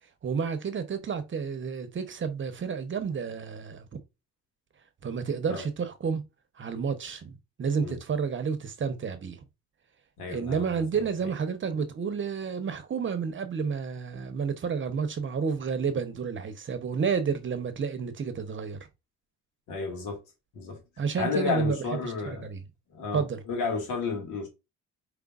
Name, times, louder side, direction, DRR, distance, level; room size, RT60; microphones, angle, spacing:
voice 1, 0.2-3.8 5.0-6.2 6.6-9.4 10.3-18.8 21.0-21.8 22.0-22.1 22.4-22.6 23.1-23.4, right 6 dB, 40° right, 0.8 m, -30 dB
voice 2, 10.2-10.8 19.7-20.2 20.5-20.8 21.2-22.5 22.9-24.5, left 4 dB, 80° left, 2.1 m, -32 dB
5.0 x 3.3 x 2.4 m
cardioid pair, 90°, 30 cm